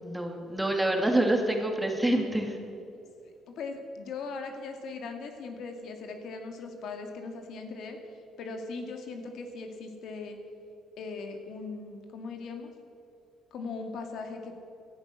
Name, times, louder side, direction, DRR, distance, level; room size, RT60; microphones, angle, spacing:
voice 1, 0.0-2.6, right 1 dB, 5° right, 2 dB, 2.3 m, -27 dB
voice 2, 3.2-10.4 11.0-12.7 13.5-14.5, left 4 dB, 70° left, 5 dB, 2.1 m, -39 dB
17.0 x 12.0 x 6.4 m, 2.6 s
cardioid pair, 105°, 0 cm